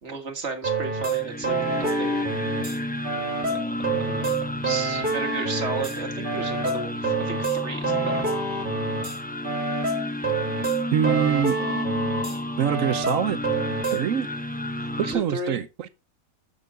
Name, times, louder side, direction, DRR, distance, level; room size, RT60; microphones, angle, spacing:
voice 1, 0.0-2.2 3.5-8.4 11.0-11.8 15.0-15.6, right 4 dB, 45° right, 2.1 m, -34 dB
sound 1, 0.6-2.8 3.0-6.0 6.2-9.2 9.4-12.4 12.6-14.0, right 3 dB, 30° right, 2.7 m, -27 dB
sound 2, 0.9-15.1, left 1 dB, 10° left, 0.4 m, -31 dB
voice 2, 10.9-11.5 12.6-13.4 13.9-14.3 14.8-15.9, right 9 dB, 65° right, 1.1 m, -24 dB
10.5 x 7.1 x 3.8 m
omnidirectional pair, 1.6 m